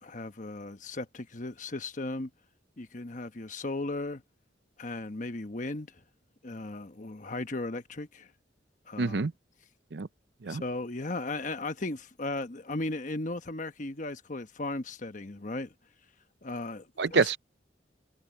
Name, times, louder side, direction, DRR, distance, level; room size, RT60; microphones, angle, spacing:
voice 1, 0.0-2.3 2.8-4.2 4.8-6.0 6.4-8.3 8.9-9.3 10.4-15.7 16.4-17.3, left 2 dB, 45° left, 1.1 m, -36 dB
voice 2, 9.0-9.3 9.9-10.1 10.4-10.6 17.0-17.4, right 4 dB, 65° right, 0.6 m, -26 dB
head